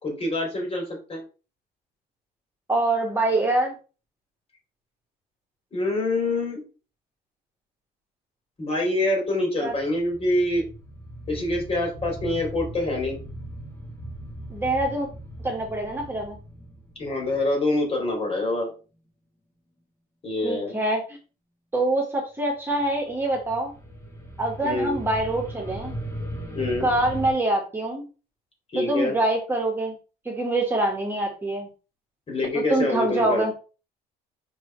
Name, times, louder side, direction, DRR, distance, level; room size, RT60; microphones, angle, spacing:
voice 1, 0.0-0.8 1.1-1.2 5.7-6.6 8.6-10.6 11.3-13.2 17.0-18.7 20.2-20.7 24.6-24.9 26.6-26.9 28.7-29.1 32.3-33.4, left 2 dB, 35° left, 2 dB, 3.5 m, -25 dB
voice 2, 2.7-3.8 9.6-9.7 14.5-15.1 15.4-16.4 20.4-21.0 21.7-23.7 24.4-25.9 26.8-28.1 28.8-30.0 30.3-31.7 32.5-33.5, right 2 dB, 15° right, -1 dB, 2.0 m, -25 dB
sound 1, 9.7-18.4 22.8-27.3, right 1 dB, 15° left, 1.8 m, -38 dB
5.7 x 4.6 x 4.7 m, 0.34 s
cardioid pair, 110°, 17 cm